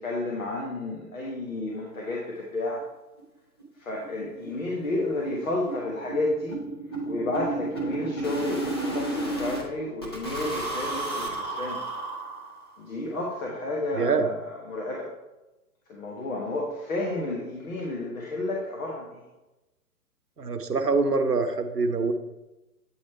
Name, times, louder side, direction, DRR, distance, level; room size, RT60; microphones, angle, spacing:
voice 1, 0.0-2.8 3.8-6.6 7.1-11.8 12.8-15.1 15.9-19.2, left 2 dB, 60° left, -2 dB, 1.2 m, -31 dB
sound 1, 2.8-2.9 3.2-3.3 3.6-3.7 4.0-4.2 4.4-9.6 10.0-12.8, right 2 dB, 20° left, 0.4 m, -32 dB
voice 2, 20.4-22.1, right 4 dB, 90° right, 8 dB, 0.7 m, -24 dB
8.4 x 3.1 x 4.3 m, 1.0 s
figure-of-eight pair, 120°, 46 cm